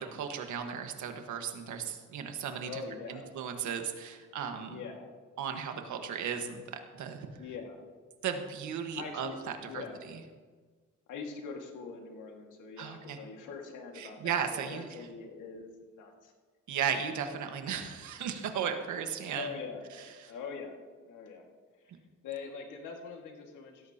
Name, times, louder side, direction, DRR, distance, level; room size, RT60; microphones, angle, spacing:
voice 1, 0.0-2.8 3.1-4.8 5.4-7.3 8.2-9.3 9.6-10.1 12.8-13.2 13.9-15.0 16.7-19.5 20.2-20.3, right 7 dB, 75° right, 5 dB, 1.5 m, -36 dB
voice 2, 2.6-3.3 4.7-5.1 5.4-5.7 7.4-7.8 8.9-9.4 9.6-10.0 11.1-16.3 19.3-19.8 20.3-20.8 21.0-21.5 22.2-23.9, left 5 dB, 85° left, 2 dB, 2.0 m, -43 dB
16.5 x 13.5 x 2.9 m, 1.5 s
cardioid pair, 90°, 30 cm